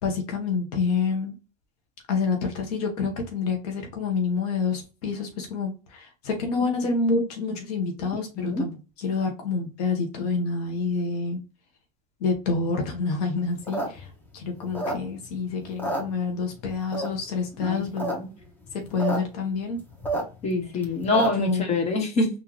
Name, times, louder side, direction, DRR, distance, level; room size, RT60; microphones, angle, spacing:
voice 1, 0.0-1.3 2.1-11.4 12.2-18.1 18.7-19.8 20.7-20.9 21.3-21.6, left 4 dB, 75° left, 3 dB, 1.1 m, -28 dB
sound 1, 13.5-15.4 15.7-16.6 16.9-17.4 17.8-18.2 18.4-18.5 18.7-19.2 19.5-21.5, right 1 dB, 10° left, 1.1 m, -30 dB
voice 2, 17.6-18.2 20.4-22.3, left 2 dB, 35° left, 2 dB, 1.6 m, -25 dB
3.9 x 2.7 x 3.0 m, 0.31 s
supercardioid pair, 120°, 20 cm